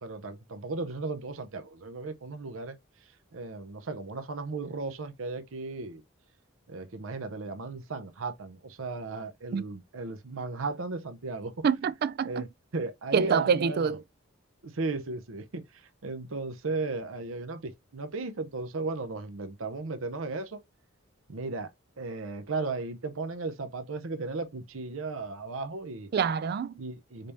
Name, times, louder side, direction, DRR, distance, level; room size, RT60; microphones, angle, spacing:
voice 1, 0.0-2.8 3.3-6.0 6.7-11.7 12.2-12.5 12.7-13.9 14.6-20.6 21.3-21.7 22.0-26.1 26.8-27.3, right 3 dB, 85° right, 0.7 m, -35 dB
voice 2, 11.6-12.5 13.1-14.0 26.1-26.7, right 6 dB, 50° right, 0.3 m, -26 dB
5.2 x 2.8 x 3.2 m
head